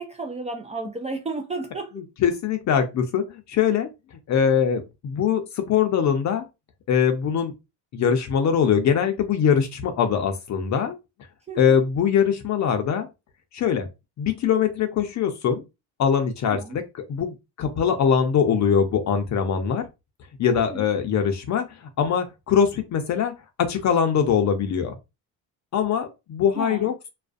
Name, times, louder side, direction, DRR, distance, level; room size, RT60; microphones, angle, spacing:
voice 1, 0.0-2.0 11.5-11.8 16.4-16.8 20.5-20.9 26.5-26.9, right 3 dB, 20° right, 0.3 m, -33 dB
voice 2, 2.2-3.9 4.3-6.4 6.9-7.5 7.9-11.0 11.6-13.1 13.5-13.9 14.2-15.6 16.0-16.8 17.1-19.8 20.4-23.3 23.6-24.9 25.7-26.9, left 7 dB, 45° left, 0.5 m, -22 dB
2.4 x 2.1 x 2.5 m
supercardioid pair, 95°, 41 cm